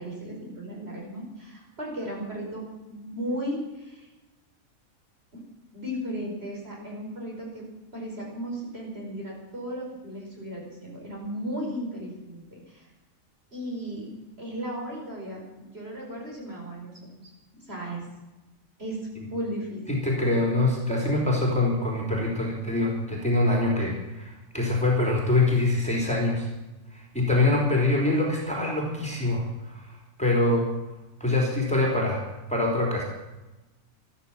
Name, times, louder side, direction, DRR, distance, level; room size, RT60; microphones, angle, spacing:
voice 1, 0.0-4.1 5.7-7.7 7.9-12.9 13.5-14.1 14.4-17.3 17.7-18.0 18.8-19.8, equal, 50° right, -2 dB, 5.3 m, -35 dB
voice 2, 19.9-26.5 26.9-29.9 30.2-30.7 31.2-32.2 32.5-33.0, left 2 dB, 5° left, -3 dB, 3.8 m, -24 dB
14.0 x 13.0 x 7.4 m, 1.0 s
omnidirectional pair, 1.4 m